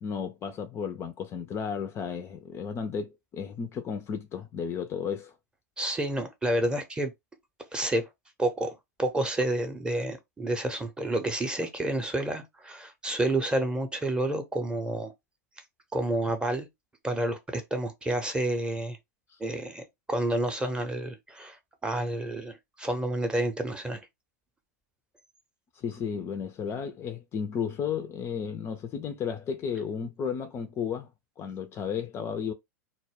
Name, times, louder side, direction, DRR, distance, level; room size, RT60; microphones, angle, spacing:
voice 1, 0.0-5.3 25.8-31.1 31.4-32.5, left 7 dB, 25° left, 0.3 m, -33 dB
voice 2, 5.8-7.1 7.7-8.1 8.4-15.1 15.9-16.7 17.0-19.0 19.4-24.0, right 1 dB, 10° right, 0.6 m, -29 dB
2.1 x 2.0 x 3.3 m
hypercardioid pair, 95°, 9 cm